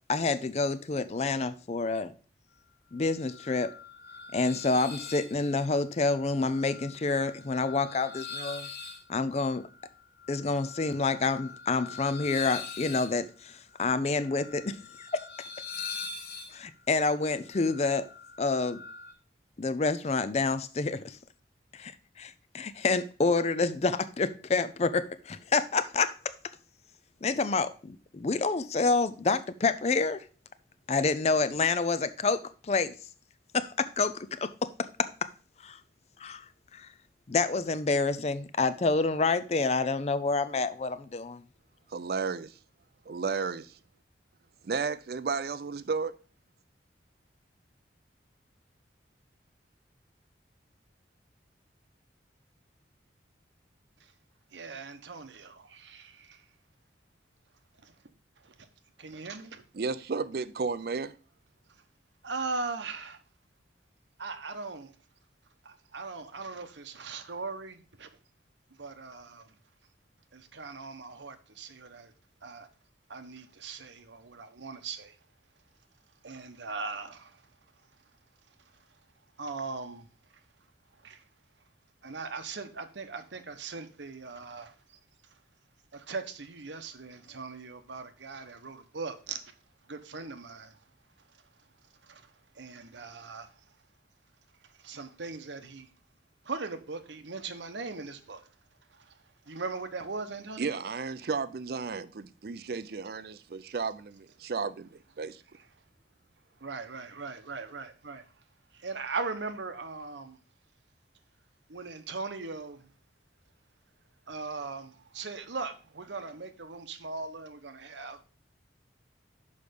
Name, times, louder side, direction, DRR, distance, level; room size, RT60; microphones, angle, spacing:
voice 1, 0.1-2.1 2.9-3.7 4.3-8.7 9.1-9.7 10.3-14.8 15.1-15.2 16.5-18.1 18.4-18.8 19.6-21.2 21.7-21.9 22.2-26.1 27.2-30.2 30.9-32.9 33.5-34.7 35.0-35.1 35.6-35.8 36.2-36.4 36.7-36.9 37.3-41.4, left 3 dB, 35° left, 0.4 m, -28 dB
sound 1, 3.0-19.1, left 5 dB, 55° left, 1.0 m, -44 dB
voice 2, 41.9-42.6 43.1-43.8 44.6-46.2 59.7-61.2 100.6-105.4, right 5 dB, 55° right, 0.4 m, -33 dB
voice 3, 54.5-56.4 57.8-57.9 58.4-58.7 59.0-59.6 62.2-63.2 64.2-64.9 65.6-68.1 68.8-69.5 70.3-72.1 72.4-72.7 73.1-75.1 76.2-77.4 79.4-80.1 81.0-81.2 82.0-84.8 85.9-89.5 89.9-90.8 92.0-92.3 92.5-93.5 94.8-95.9 96.4-98.5 98.9-99.1 99.5-100.7 106.6-108.2 108.7-110.4 111.7-112.9 114.3-118.2, right 4 dB, 80° right, 0.9 m, -39 dB
6.6 x 5.2 x 5.1 m
head